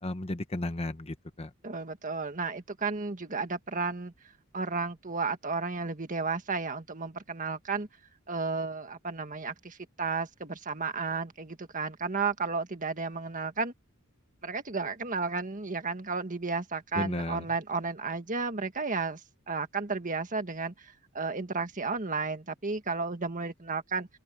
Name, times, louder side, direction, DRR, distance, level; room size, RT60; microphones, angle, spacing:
voice 1, 0.0-1.5 16.9-17.4, left 1 dB, 30° left, 1.1 m, -34 dB
voice 2, 1.6-4.1 4.5-7.9 8.3-13.7 14.4-19.2 19.5-24.1, right 4 dB, 35° right, 1.7 m, -33 dB
open air
head